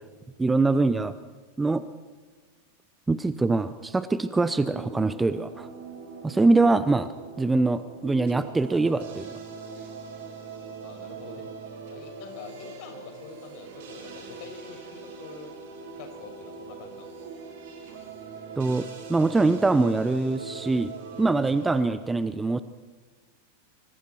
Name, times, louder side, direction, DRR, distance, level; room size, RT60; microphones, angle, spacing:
voice 1, 0.4-1.1 1.6-1.8 3.1-5.7 6.2-7.1 7.4-9.3 18.6-22.6, right 3 dB, 10° right, 14 dB, 0.8 m, -23 dB
sound 1, 4.3-21.8, right 5 dB, 50° right, 5.6 m, -42 dB
voice 2, 10.8-11.5 11.9-15.5 16.0-17.4 21.1-21.3, left 5 dB, 45° left, 3 dB, 6.2 m, -45 dB
25.5 x 25.0 x 4.6 m, 1.4 s
figure-of-eight pair, 90°, 0 cm